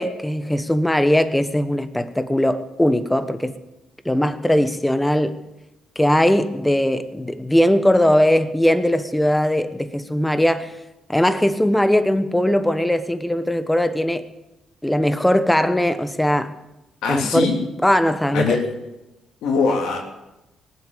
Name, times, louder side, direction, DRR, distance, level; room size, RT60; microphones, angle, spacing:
voice 1, 0.0-3.6 4.0-5.4 6.0-10.7 11.1-14.3 14.8-16.5 17.1-17.5 17.8-18.6, left 1 dB, 5° left, 1.1 m, -19 dB
voice 2, 17.0-17.6 18.3-18.6 19.4-20.0, left 4 dB, 85° left, 3.1 m, -21 dB
19.0 x 8.2 x 9.1 m
cardioid pair, 90°, 0 cm